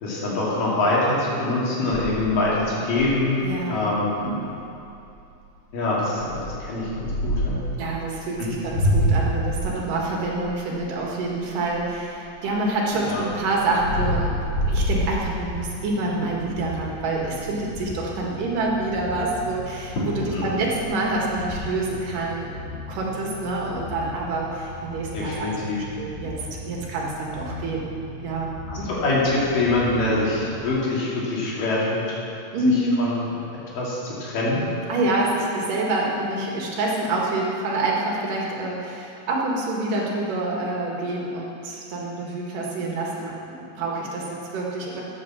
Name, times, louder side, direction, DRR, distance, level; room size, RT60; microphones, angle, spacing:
voice 1, 0.0-3.4 3.7-4.2 5.7-7.6 8.4-8.5 13.1-13.2 20.3-20.6 25.1-25.8 28.7-32.2 33.0-33.2 33.7-34.6, left 2 dB, 75° left, -6 dB, 4.3 m, -24 dB
sound 1, 1.9-3.4 3.9-4.0 4.3-4.5 5.0-5.3 6.2-7.6 8.3-12.2 12.7-15.7 16.2-16.5 16.7-16.8 17.1-17.9 19.5-19.6 20.0-20.3 20.6-21.6, equal, 40° left, 4.3 m, -26 dB
voice 2, 3.4-3.9 4.2-4.4 7.7-14.4 14.7-22.5 22.9-25.5 26.0-27.9 28.2-29.0 32.5-33.0 34.9-45.0, right 2 dB, 70° right, -2 dB, 3.3 m, -27 dB
sound 2, 13.3-30.4, left 2 dB, 25° left, 3.8 m, -38 dB
12.0 x 8.8 x 7.1 m, 2.7 s
omnidirectional pair, 4.0 m